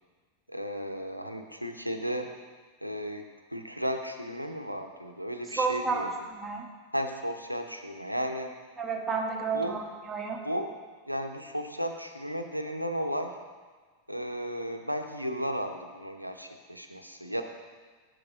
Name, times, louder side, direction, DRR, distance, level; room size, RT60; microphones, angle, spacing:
voice 1, 0.5-2.3 2.8-3.2 3.5-6.3 6.9-8.5 9.5-9.8 10.4-10.7 11.1-13.3 14.1-17.4, equal, 90° right, 5 dB, 0.6 m, -34 dB
voice 2, 5.6-6.0 6.3-6.7 8.8-9.8 10.1-10.4, right 4 dB, 15° right, 0 dB, 1.2 m, -30 dB
7.8 x 6.7 x 3.9 m, 1.4 s
figure-of-eight pair, 90°, 0 cm